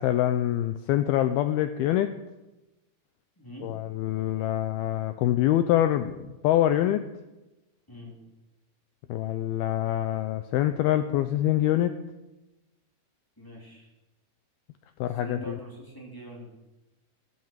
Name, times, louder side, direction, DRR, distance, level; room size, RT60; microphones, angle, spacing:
voice 1, 0.0-2.1 3.6-7.1 9.1-12.0 15.0-15.6, left 12 dB, 85° left, 9 dB, 2.2 m, -25 dB
voice 2, 3.4-3.7 7.9-8.2 13.4-13.9 15.1-16.5, right 1 dB, 5° left, -2 dB, 2.5 m, -43 dB
14.5 x 12.5 x 7.5 m, 1.0 s
omnidirectional pair, 5.1 m